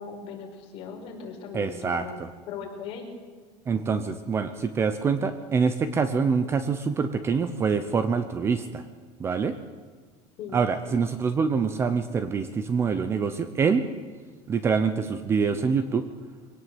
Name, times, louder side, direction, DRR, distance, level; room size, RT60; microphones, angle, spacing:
voice 1, 0.0-3.1 10.4-10.7, left 6 dB, 40° left, 0 dB, 5.0 m, -39 dB
voice 2, 1.5-2.3 3.7-8.8 9.2-9.6 10.5-13.9 14.5-16.1, right 5 dB, 20° right, 11 dB, 0.8 m, -25 dB
23.0 x 17.5 x 8.0 m, 1.5 s
cardioid pair, 175°, 14 cm